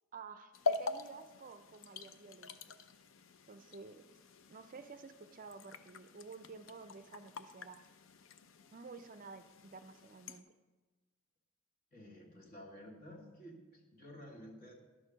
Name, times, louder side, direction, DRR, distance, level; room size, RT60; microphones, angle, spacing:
voice 1, 0.1-2.6 3.5-4.1 4.5-7.8 8.7-10.4, right 4 dB, 40° right, 10 dB, 0.4 m, -52 dB
sound 1, 0.5-10.4, left 4 dB, 75° left, 0.6 m, -44 dB
voice 2, 11.9-14.7, equal, 45° left, 0 dB, 2.0 m, -52 dB
11.0 x 6.5 x 6.3 m, 1.2 s
head